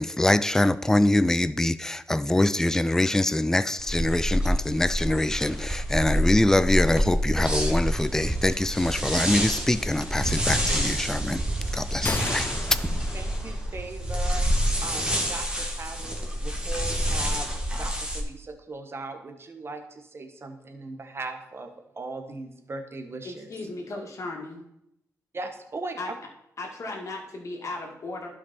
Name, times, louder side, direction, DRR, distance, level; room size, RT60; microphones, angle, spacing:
voice 1, 0.0-11.4 11.7-12.5, left 1 dB, 10° left, 0.4 m, -24 dB
sound 1, 3.8-18.2, equal, 15° right, 1.5 m, -27 dB
sound 2, 12.0-13.9, left 2 dB, 30° left, 0.9 m, -33 dB
voice 2, 13.1-14.5 14.8-23.5 25.3-26.0, right 3 dB, 40° right, 1.2 m, -38 dB
voice 3, 23.2-24.7 26.0-26.1 26.6-28.3, left 2 dB, 55° left, 2.1 m, -36 dB
11.5 x 5.4 x 4.3 m
cardioid pair, 80°, 6 cm